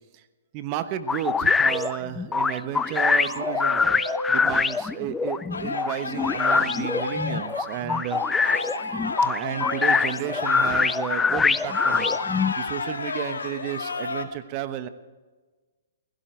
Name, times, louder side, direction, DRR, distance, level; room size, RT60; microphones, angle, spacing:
voice 1, 0.5-3.8 4.3-8.2 9.2-12.1 12.6-14.9, right 11 dB, 35° right, 11 dB, 1.1 m, -32 dB
sound 1, 1.1-12.5, left 5 dB, 10° left, 0.5 m, -24 dB
sound 2, 2.4-2.5 2.8-4.4 6.9-9.9, equal, 85° right, 5.8 m, -35 dB
sound 3, 5.5-14.2, left 4 dB, 85° left, 1.8 m, -32 dB
16.5 x 16.0 x 4.6 m, 1.3 s
hypercardioid pair, 130°, 0 cm